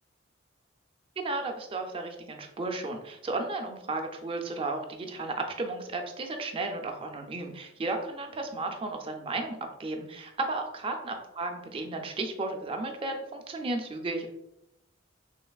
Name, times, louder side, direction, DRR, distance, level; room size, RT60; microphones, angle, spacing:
voice 1, 1.2-14.3, right 2 dB, 25° right, 4 dB, 0.4 m, -34 dB
3.1 x 2.8 x 2.3 m, 0.85 s
head